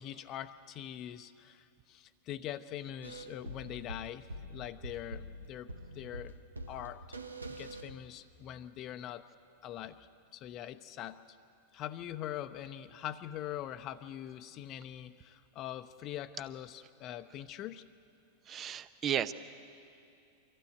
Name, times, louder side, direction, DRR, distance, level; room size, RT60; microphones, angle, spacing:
voice 1, 0.0-6.3 6.7-7.0 7.6-9.2 9.6-11.4 11.7-17.8, left 11 dB, 35° left, 10 dB, 0.8 m, -43 dB
sound 1, 3.0-8.5, equal, 80° right, 1.0 m, -45 dB
voice 2, 18.5-19.3, right 9 dB, 30° right, 14 dB, 0.8 m, -33 dB
24.5 x 15.5 x 9.5 m, 2.6 s
figure-of-eight pair, 90°, 0 cm